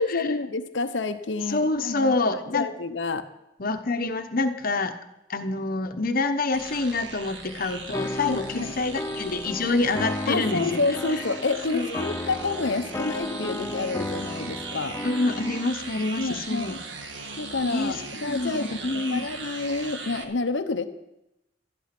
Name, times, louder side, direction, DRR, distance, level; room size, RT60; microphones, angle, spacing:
voice 1, 0.0-3.2 8.3-8.7 10.3-15.0 16.2-16.8 17.4-20.8, left 3 dB, 85° left, 9 dB, 0.8 m, -29 dB
voice 2, 1.5-2.7 3.6-5.0 5.3-10.8 11.7-12.1 15.0-16.8 17.7-18.0 18.2-19.3, left 3 dB, 55° left, 8 dB, 1.0 m, -27 dB
sound 1, 6.5-20.3, right 4 dB, 85° right, 1.7 m, -39 dB
sound 2, 7.9-15.7, left 1 dB, 15° left, 0.5 m, -34 dB
12.5 x 12.0 x 6.0 m, 0.89 s
head